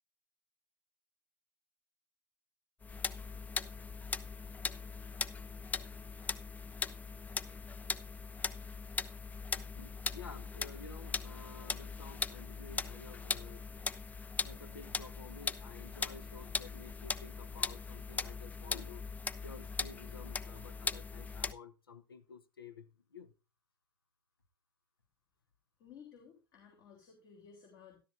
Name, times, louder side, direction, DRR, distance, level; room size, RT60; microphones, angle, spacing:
sound 1, 2.8-21.5, left 4 dB, 15° left, 0.5 m, -40 dB
voice 1, 9.5-13.9 14.4-19.1 19.4-23.3, left 5 dB, 80° left, 0.9 m, -52 dB
voice 2, 25.8-28.0, left 7 dB, 50° left, 3.4 m, -56 dB
13.0 x 12.5 x 2.6 m
figure-of-eight pair, 85°, 12 cm